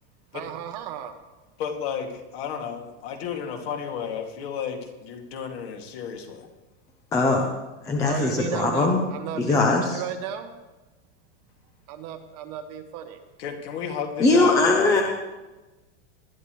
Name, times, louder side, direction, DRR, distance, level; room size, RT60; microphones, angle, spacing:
voice 1, 0.3-1.1 8.1-9.6 9.9-10.5 11.9-13.2, right 9 dB, 35° right, 8 dB, 0.9 m, -34 dB
voice 2, 1.6-6.5 13.4-15.0, left 7 dB, 55° left, 3 dB, 2.5 m, -32 dB
voice 3, 7.1-7.4 7.8-9.0 9.4-10.0 14.2-15.0, left 3 dB, 10° left, 1 dB, 0.6 m, -20 dB
19.5 x 12.0 x 3.2 m, 1.1 s
supercardioid pair, 180°, 36 cm